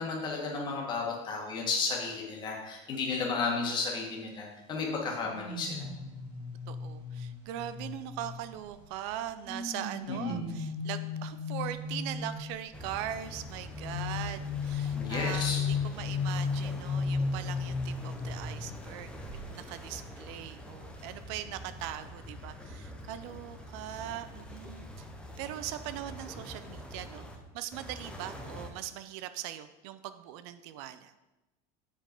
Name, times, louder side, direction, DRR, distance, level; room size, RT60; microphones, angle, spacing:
voice 1, 0.0-5.9 10.1-10.5 14.9-15.6, left 4 dB, 30° left, -1 dB, 1.6 m, -33 dB
sound 1, 5.2-8.8 9.4-12.7 13.7-19.0 19.2-19.5, left 5 dB, 25° right, 2.3 m, -35 dB
voice 2, 6.7-25.1 25.4-27.3 27.5-31.1, right 12 dB, 65° right, 11 dB, 0.5 m, -40 dB
sound 2, 12.7-27.4 27.7-28.7, left 1 dB, 5° left, 0.7 m, -45 dB
7.6 x 5.2 x 5.2 m, 1.0 s
cardioid pair, 165°, 16 cm